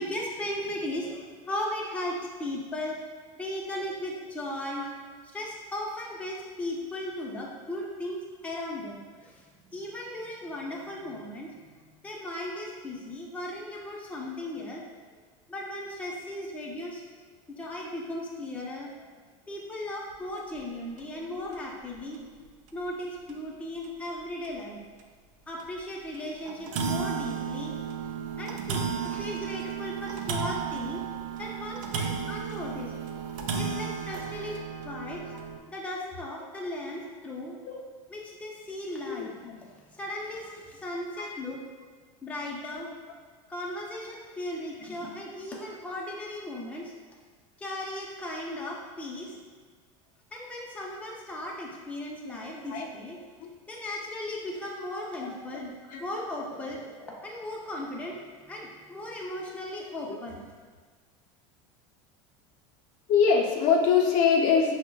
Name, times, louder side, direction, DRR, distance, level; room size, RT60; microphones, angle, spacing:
voice 1, 0.0-3.0 3.4-4.8 5.3-11.5 12.0-14.8 15.5-17.0 17.5-19.1 19.5-22.2 22.7-24.8 25.5-28.0 28.4-31.0 31.4-32.9 33.5-35.2 35.7-37.6 38.1-41.6 42.2-42.9 43.5-46.9 47.6-49.4 50.3-53.2 53.7-55.7 56.0-60.4, left 1 dB, 10° left, -3 dB, 0.5 m, -37 dB
voice 2, 4.7-5.0 21.3-21.4 37.6-37.8 39.0-39.6 41.2-41.3 52.7-52.9 53.4-53.5 55.2-56.0 63.1-64.7, left 6 dB, 55° left, 0 dB, 0.5 m, -25 dB
sound 1, 20.4-20.6 21.0-21.1 21.5-21.6 22.7-22.8 23.3-23.4 23.8-23.9 24.4-24.5 25.6-25.8 26.1-26.2 26.4-35.6, right 6 dB, 85° right, 0.4 m, -33 dB
5.5 x 2.1 x 2.3 m, 1.5 s
supercardioid pair, 110°, 17 cm